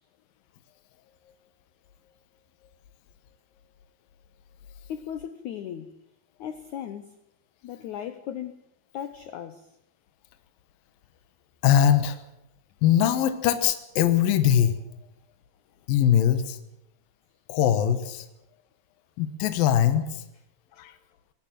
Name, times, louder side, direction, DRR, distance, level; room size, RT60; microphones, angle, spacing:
voice 1, 4.9-6.0 6.4-7.1 7.6-8.6 8.9-9.8 20.8-20.9, left 9 dB, 90° left, 1.6 m, -37 dB
voice 2, 11.6-12.2 12.8-14.8 15.9-16.6 17.5-18.3 19.2-20.2 20.8-20.9, left 10 dB, 70° left, 2.7 m, -21 dB
21.0 x 18.5 x 7.7 m
omnidirectional pair, 4.8 m